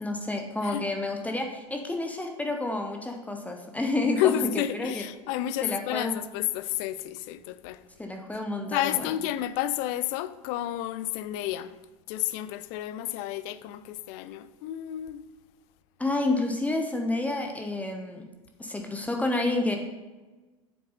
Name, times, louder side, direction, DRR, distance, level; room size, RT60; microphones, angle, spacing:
voice 1, 0.0-5.0 5.6-6.2 8.0-9.1 16.0-18.2 18.6-19.8, left 2 dB, 10° left, 1.0 m, -29 dB
voice 2, 4.2-7.8 8.7-11.7 12.1-15.2, left 13 dB, 55° left, 0.5 m, -30 dB
7.8 x 6.5 x 4.2 m
hypercardioid pair, 80°, 16 cm